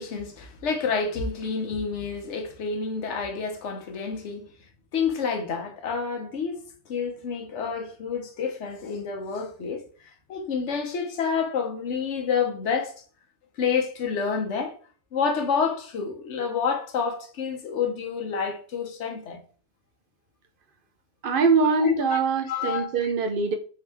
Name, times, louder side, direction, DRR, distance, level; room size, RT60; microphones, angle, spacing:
voice 1, 0.0-4.5 4.9-12.9 13.6-14.8 15.1-19.4 21.8-22.2 22.5-23.1, left 6 dB, 90° left, 1.1 m, -29 dB
voice 2, 21.2-23.6, right 4 dB, 60° right, 0.7 m, -23 dB
3.8 x 2.8 x 3.4 m
omnidirectional pair, 1.1 m